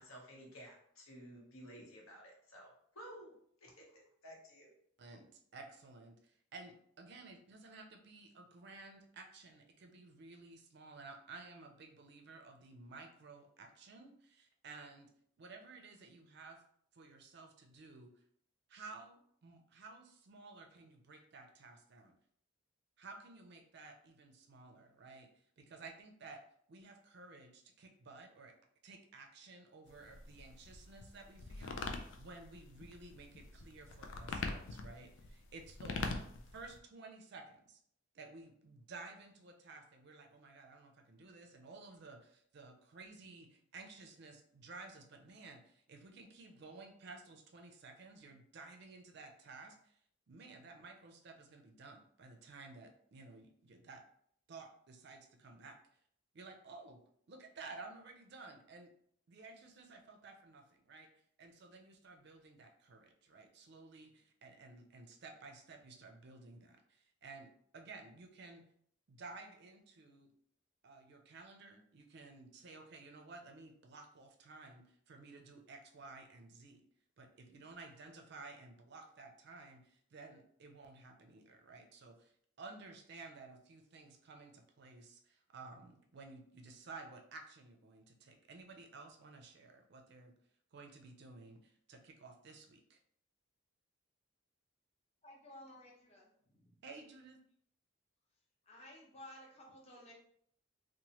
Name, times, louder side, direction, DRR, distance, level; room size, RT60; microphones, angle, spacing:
voice 1, 0.0-3.4 3.6-4.7, equal, 90° left, -1 dB, 0.9 m, -54 dB
voice 2, 5.0-15.1 15.4-16.6 16.9-18.1 18.7-22.1 23.0-26.4 26.7-28.5 28.8-36.1 36.5-37.8 38.1-50.0 50.3-54.0 54.5-55.8 56.3-57.0 57.3-58.9 59.3-61.1 61.4-68.6 69.1-70.3 70.8-76.8 77.2-90.3 90.7-93.0 96.8-97.4, right 3 dB, 50° right, 4 dB, 0.4 m, -54 dB
sound 1, 29.9-36.8, left 3 dB, 70° left, 0.3 m, -43 dB
voice 3, 95.2-96.7 98.7-100.1, left 1 dB, 30° left, -3 dB, 0.7 m, -55 dB
3.0 x 2.1 x 2.8 m, 0.66 s
head